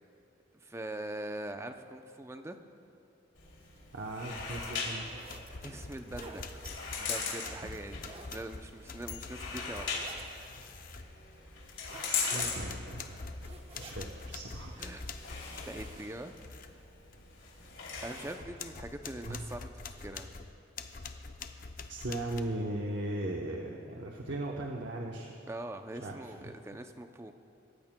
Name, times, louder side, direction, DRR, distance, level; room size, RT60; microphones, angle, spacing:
voice 1, 0.5-2.6 5.6-6.7 7.0-10.0 14.8-15.0 15.6-16.7 18.0-19.7 20.0-20.3 25.4-27.3, right 1 dB, 15° right, 7 dB, 0.5 m, -42 dB
sound 1, 3.3-18.3, left 5 dB, 75° left, 2.8 m, -40 dB
sound 2, 3.6-3.8 4.3-5.5 5.9-6.7 7.7-8.4 8.9-9.4 9.7-10.3 10.9-11.0 11.9-12.6 13.1-14.1 14.4-15.0 15.5-16.1, right 2 dB, 30° right, 1.0 m, -50 dB
voice 2, 3.9-5.2 12.1-13.3 13.7-14.7 19.3-19.4 21.9-25.3 26.0-26.2, right 1 dB, 65° right, -1 dB, 0.9 m, -38 dB
sound 3, 4.4-4.9 5.3-12.0 12.3-16.7 17.1-17.3 17.7-22.4, left 4 dB, 45° left, 0.6 m, -45 dB
26.0 x 15.0 x 2.2 m, 2.7 s
head